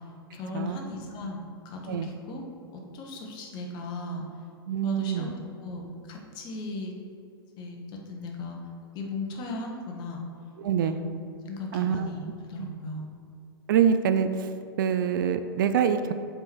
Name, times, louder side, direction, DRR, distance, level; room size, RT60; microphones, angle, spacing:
voice 1, 0.3-2.4 2.7-4.2 4.8-5.3 5.6-6.9 7.6-8.6 8.9-10.2 10.8-11.2 11.4-13.1, left 3 dB, 35° left, 1 dB, 1.2 m, -37 dB
voice 2, 4.7-5.3 10.6-11.0 11.7-12.1 12.6-12.7 13.7-14.3 14.8-16.1, right 8 dB, 55° right, 9 dB, 0.4 m, -25 dB
7.5 x 4.6 x 4.4 m, 2.5 s
figure-of-eight pair, 100°, 13 cm